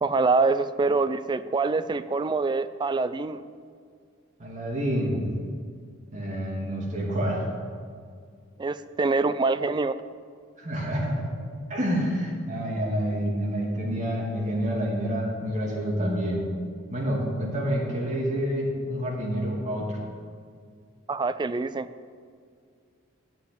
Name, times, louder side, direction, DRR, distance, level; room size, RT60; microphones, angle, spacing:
voice 1, 0.0-3.4 8.6-10.0 21.1-21.9, right 3 dB, 20° right, 12 dB, 0.3 m, -25 dB
voice 2, 4.4-5.3 6.1-7.4 10.6-11.2 11.7-16.4 16.9-20.0, equal, 35° right, -2 dB, 2.4 m, -28 dB
8.2 x 8.1 x 8.6 m, 2.1 s
head